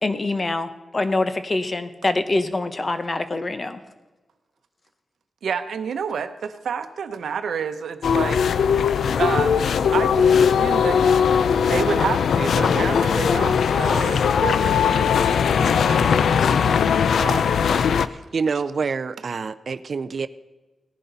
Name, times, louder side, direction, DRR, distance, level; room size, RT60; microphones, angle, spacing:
voice 1, 0.0-3.8, left 2 dB, 35° left, 10 dB, 0.9 m, -25 dB
voice 2, 5.4-8.4 9.2-9.7 9.9-15.1 15.6-17.5, right 6 dB, 85° right, 9 dB, 0.8 m, -29 dB
sound 1, 8.0-18.1, left 7 dB, 85° left, 0.4 m, -19 dB
voice 3, 18.1-20.3, right 5 dB, 55° right, 13 dB, 0.4 m, -27 dB
17.5 x 11.0 x 4.0 m, 1.2 s
cardioid pair, 85°, 0 cm